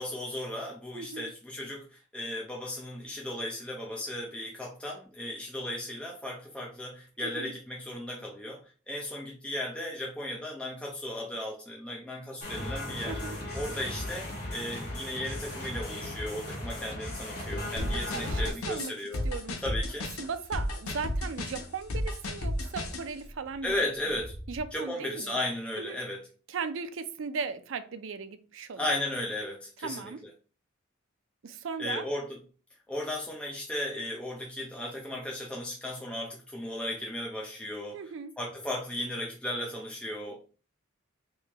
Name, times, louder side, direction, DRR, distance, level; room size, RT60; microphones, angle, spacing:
voice 1, 0.0-8.6 8.9-13.2 13.5-19.2 19.6-20.1 23.6-24.4 24.7-26.3 28.8-30.1 31.8-32.4 32.9-38.0 38.4-40.4, left 1 dB, 5° left, 0.5 m, -35 dB
voice 2, 0.9-1.3 7.2-7.5 13.1-13.4 17.6-18.9 19.2-19.6 20.2-23.8 24.5-25.3 25.8-26.0 26.5-28.9 29.8-30.2 31.4-32.1 37.9-38.3, right 5 dB, 60° right, 0.4 m, -37 dB
sound 1, 12.4-18.5, left 1 dB, 50° left, 1.3 m, -37 dB
sound 2, 17.8-23.0, left 1 dB, 85° left, 0.8 m, -32 dB
sound 3, 20.2-24.7, equal, 30° left, 1.5 m, -47 dB
3.2 x 2.8 x 3.4 m
head